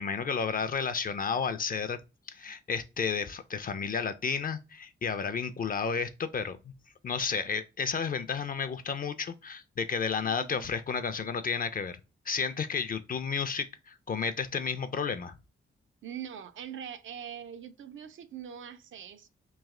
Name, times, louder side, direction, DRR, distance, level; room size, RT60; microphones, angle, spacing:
voice 1, 0.0-2.0 2.3-6.7 7.0-12.0 12.3-15.4, left 6 dB, 45° left, 0.4 m, -32 dB
voice 2, 10.2-10.7 16.0-19.3, right 9 dB, 75° right, 0.5 m, -43 dB
3.1 x 2.8 x 3.6 m
cardioid pair, 85°, 20 cm